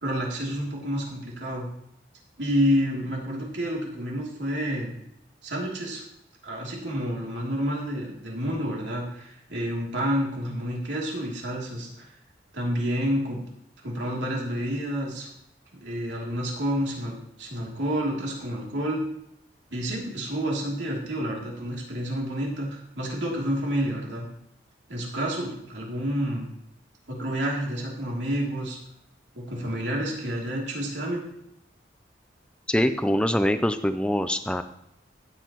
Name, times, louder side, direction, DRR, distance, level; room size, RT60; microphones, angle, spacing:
voice 1, 0.0-1.7 2.4-4.9 5.4-6.0 6.4-12.1 12.5-13.4 13.8-15.3 15.8-19.0 19.7-24.2 24.9-26.5 27.1-28.8 29.3-31.3, equal, 75° right, -2 dB, 3.0 m, -29 dB
voice 2, 32.7-34.6, equal, 5° left, 10 dB, 0.5 m, -24 dB
14.5 x 8.2 x 3.1 m, 0.78 s
head